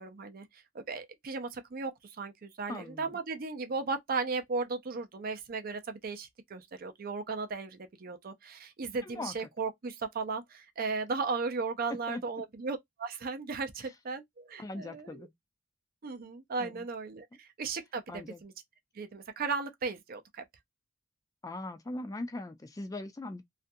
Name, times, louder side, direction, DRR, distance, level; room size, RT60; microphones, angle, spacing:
voice 1, 0.0-15.3 16.0-18.5 18.9-20.4, right 4 dB, 50° right, 0.5 m, -36 dB
voice 2, 2.7-3.2 9.0-9.3 12.1-12.2 14.6-15.3 16.6-16.8 18.1-18.4 21.4-23.4, left 2 dB, 20° left, 0.3 m, -40 dB
2.4 x 2.2 x 2.6 m
head